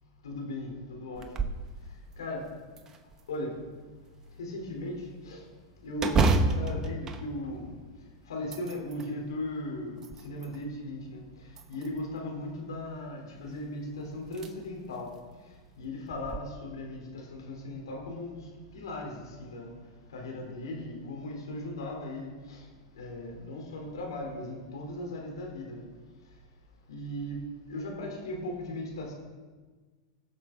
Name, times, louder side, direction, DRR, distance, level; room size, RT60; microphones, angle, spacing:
voice 1, 0.2-1.5 2.2-2.5 3.3-3.6 4.4-5.4 5.8-7.8 8.3-15.1 15.8-19.7 20.1-22.7 23.0-25.9 26.9-27.4 27.7-29.1, left 1 dB, 90° left, 0 dB, 3.8 m, -37 dB
sound 1, 1.1-1.7 2.1-2.2 2.8-3.6 6.0-8.0 8.4-9.1 9.7-10.6 11.5-12.2 13.6-13.7 14.3-14.5 14.9-15.0 16.1-16.4, right 3 dB, 25° right, 1.1 m, -29 dB
22.0 x 7.4 x 4.0 m, 1.4 s
hypercardioid pair, 125°, 2 cm